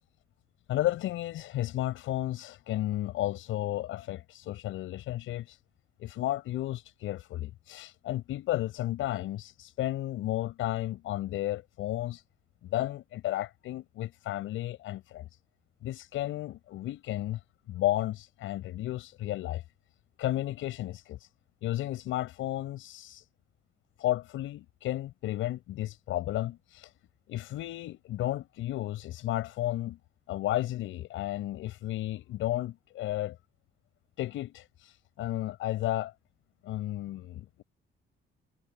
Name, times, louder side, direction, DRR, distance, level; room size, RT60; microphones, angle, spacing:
voice 1, 0.7-5.6 6.0-12.2 12.6-15.3 15.8-17.4 17.7-19.6 20.2-21.3 21.6-23.3 24.0-26.9 27.3-30.0 30.3-33.4 34.2-36.1 36.6-37.6, left 14 dB, 90° left, 7.5 m, -33 dB
cardioid pair, 90°, 20 cm